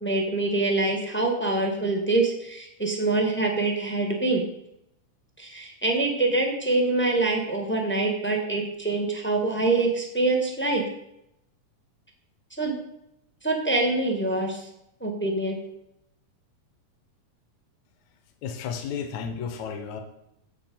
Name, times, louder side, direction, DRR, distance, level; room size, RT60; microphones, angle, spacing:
voice 1, 0.0-4.4 5.4-10.8 12.6-12.7 13.4-14.6 15.0-15.6, right 2 dB, 10° left, 2 dB, 0.6 m, -25 dB
voice 2, 18.4-20.0, left 6 dB, 70° left, 5 dB, 2.4 m, -32 dB
8.8 x 7.7 x 6.9 m, 0.80 s
omnidirectional pair, 3.7 m